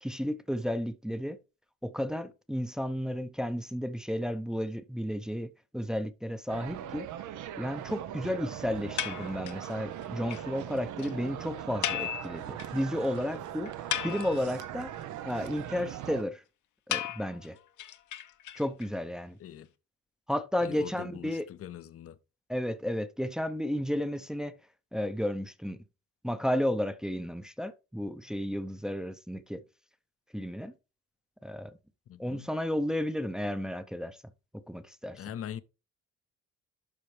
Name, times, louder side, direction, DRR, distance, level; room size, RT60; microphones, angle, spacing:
voice 1, 0.0-1.4 1.8-7.1 7.6-14.9 15.2-16.4 16.9-17.6 18.6-19.4 20.3-21.5 22.5-24.6 24.9-25.8 26.2-29.6 30.3-30.7 31.4-31.8 32.2-34.2 34.5-35.2, equal, ahead, 0.6 m, -33 dB
sound 1, 6.5-16.2, right 11 dB, 75° right, 0.7 m, -40 dB
sound 2, 9.0-9.7 10.0-10.1 10.3-10.4 10.7-10.8 11.0-11.1 11.8-12.8 13.2-13.3 13.7-14.6 16.9-18.9, left 11 dB, 75° left, 1.0 m, -35 dB
voice 2, 20.6-22.2 32.1-32.5 35.1-35.6, left 10 dB, 50° left, 0.7 m, -42 dB
12.0 x 4.4 x 3.2 m
cardioid pair, 90°, 30 cm